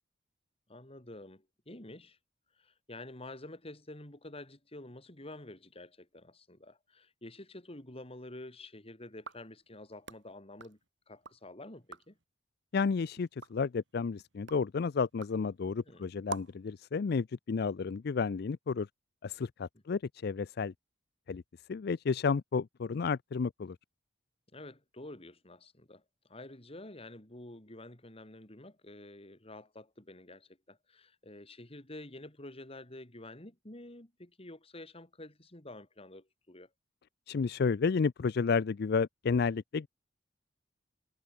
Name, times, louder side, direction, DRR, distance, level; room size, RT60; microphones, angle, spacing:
voice 1, 0.7-2.2 2.6-10.8 11.1-12.2 15.8-16.1 24.5-36.7, left 1 dB, 35° left, 3.4 m, -49 dB
sound 1, 9.1-11.4 11.8-12.2 12.7-16.7, right 4 dB, 80° right, 2.3 m, -49 dB
voice 2, 12.7-18.9 19.2-20.7 21.3-21.4 21.7-23.8 37.3-39.9, left 5 dB, 60° left, 0.4 m, -31 dB
head